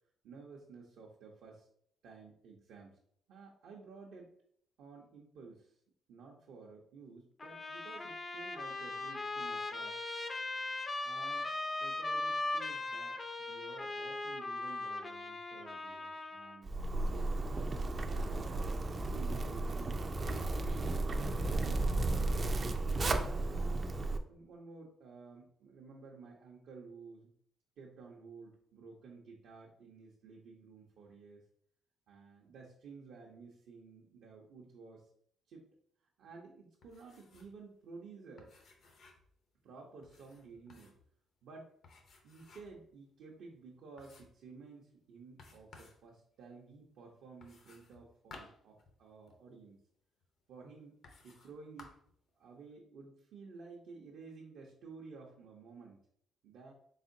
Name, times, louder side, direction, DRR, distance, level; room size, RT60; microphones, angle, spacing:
voice 1, 0.2-1.7 2.0-3.0 3.3-4.3 4.8-5.7 6.1-10.0 11.0-11.5 11.8-16.7 17.0-18.6 19.1-20.9 23.0-24.0 24.3-27.3 27.8-31.4 32.1-35.1 35.5-35.6 36.2-38.5 39.6-40.9 41.4-41.7 42.2-49.8 50.5-51.0 51.2-51.9 52.3-56.0 56.4-56.7, right 4 dB, 80° right, -3 dB, 0.7 m, -53 dB
Trumpet, 7.4-16.6, left 2 dB, 30° left, 0.5 m, -39 dB
Zipper (clothing), 16.6-24.2, right 2 dB, 35° right, 0.4 m, -34 dB
sound 1, 36.8-37.6 37.9-38.0 38.4-39.3 40.0-41.1 41.8-42.8 43.3-43.4 44.0-44.5 45.4-46.0 47.4-49.4 50.2-50.3 51.0-51.5 51.8-52.2, left 3 dB, 65° left, 0.7 m, -58 dB
4.1 x 3.6 x 2.6 m, 0.64 s
cardioid pair, 90°, 0 cm